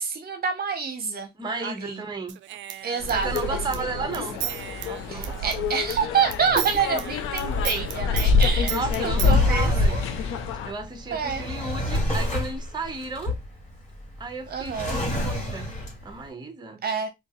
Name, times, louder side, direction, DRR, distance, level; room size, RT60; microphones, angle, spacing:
voice 1, 0.0-1.3 1.6-2.0 2.8-4.2 5.1-10.0 11.1-11.5 14.5-15.0 16.8-17.1, right 6 dB, 50° right, 0.9 m, -28 dB
voice 2, 1.3-2.4 3.1-4.4 4.8-5.6 6.6-7.0 8.7-10.0 10.6-13.4 14.2-15.7 16.0-16.8, right 3 dB, 20° right, 0.9 m, -34 dB
Human voice / Scissors, 2.3-6.0 6.3-9.3, right 11 dB, 65° right, 0.4 m, -34 dB
sound 1, 3.0-10.7, left 4 dB, 90° left, 0.6 m, -26 dB
Drawer open or close, 6.9-16.2, left 1 dB, 35° left, 2.2 m, -31 dB
3.6 x 2.8 x 2.9 m
cardioid pair, 90°, 20 cm